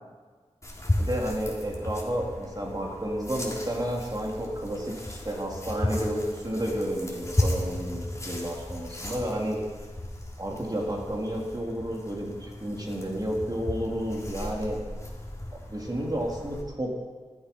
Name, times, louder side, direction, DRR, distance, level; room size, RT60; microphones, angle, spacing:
sound 1, 0.6-16.6, left 1 dB, 25° left, 3.3 m, -34 dB
voice 1, 1.0-9.6 10.4-14.8 15.7-16.9, equal, 35° right, -2 dB, 3.4 m, -31 dB
14.0 x 13.0 x 5.4 m, 1.5 s
wide cardioid pair, 55°, 12 cm